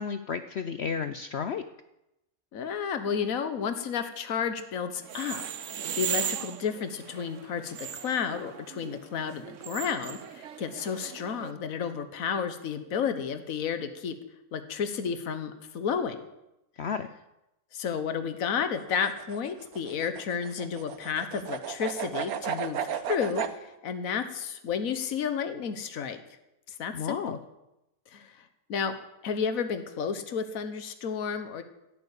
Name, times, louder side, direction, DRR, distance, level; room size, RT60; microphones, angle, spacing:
voice 1, 0.0-1.6 16.8-17.1 26.9-27.4, left 6 dB, 55° left, 9 dB, 0.8 m, -32 dB
voice 2, 2.5-5.4 5.7-14.1 14.5-16.2 17.7-26.2 26.7-27.4 28.1-28.9 29.2-31.6, left 6 dB, 70° left, 9 dB, 1.5 m, -32 dB
sound 1, 5.0-11.5, right 9 dB, 65° right, 1.1 m, -37 dB
sound 2, 18.8-23.6, right 8 dB, 90° right, 1.4 m, -34 dB
16.5 x 8.7 x 8.3 m, 0.90 s
omnidirectional pair, 1.5 m